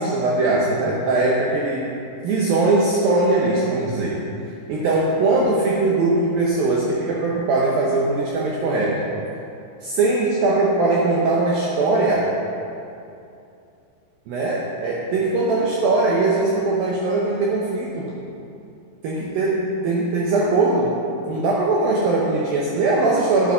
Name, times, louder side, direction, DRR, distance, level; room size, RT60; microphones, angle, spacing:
voice 1, 0.0-1.9 2.2-4.2 4.7-9.1 9.8-12.3 14.3-18.1 19.0-23.5, right 2 dB, 70° right, -4 dB, 2.3 m, -20 dB
10.0 x 8.6 x 5.6 m, 2.7 s
omnidirectional pair, 5.1 m